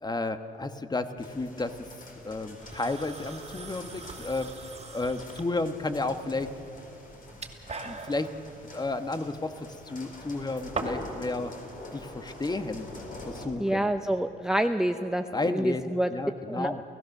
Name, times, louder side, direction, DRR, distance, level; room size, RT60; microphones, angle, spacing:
voice 1, 0.0-1.8 2.2-4.5 4.9-6.5 7.8-8.3 8.7-11.5 11.9-12.9 13.3-13.9 15.3-15.8 16.1-16.8, left 2 dB, 20° left, 9 dB, 1.3 m, -32 dB
sound 1, 1.2-13.5, left 2 dB, 45° left, 4.2 m, -46 dB
sound 2, 2.6-11.2, right 3 dB, 35° right, 2.5 m, -42 dB
voice 2, 13.6-16.1 16.5-16.7, right 1 dB, 5° right, 8 dB, 0.6 m, -27 dB
30.0 x 16.0 x 6.6 m, 2.8 s
cardioid pair, 90°, 20 cm